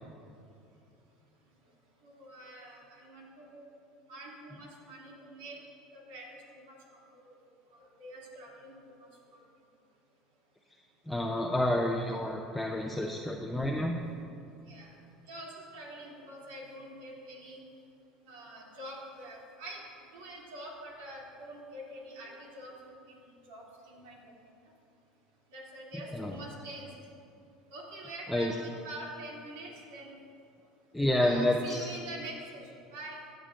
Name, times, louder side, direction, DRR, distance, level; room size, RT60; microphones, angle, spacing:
voice 1, 2.0-3.7 4.1-5.6 5.9-7.0 7.7-9.4 14.7-15.0 15.3-17.6 18.3-19.8 20.1-24.5 25.5-26.9 27.7-30.3 31.2-32.6 32.9-33.2, right 1 dB, 85° right, -3 dB, 2.7 m, -46 dB
voice 2, 11.1-14.0 26.1-26.3 28.3-28.5 30.9-31.6, left 1 dB, 5° left, 0 dB, 0.7 m, -29 dB
16.5 x 9.0 x 2.6 m, 2.6 s
supercardioid pair, 100°, 0 cm